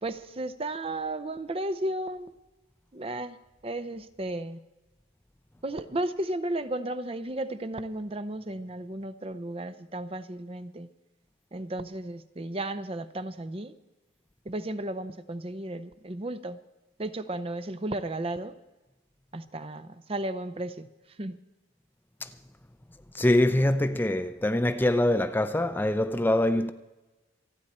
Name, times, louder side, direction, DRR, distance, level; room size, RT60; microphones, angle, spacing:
voice 1, 0.0-2.3 2.9-3.4 3.6-4.6 5.6-10.9 11.5-13.7 14.5-16.6 17.0-18.5 19.3-20.9 21.2-21.4, right 1 dB, 30° right, 0.7 m, -34 dB
voice 2, 23.1-26.7, left 1 dB, 10° left, 0.5 m, -24 dB
27.5 x 9.6 x 4.3 m
head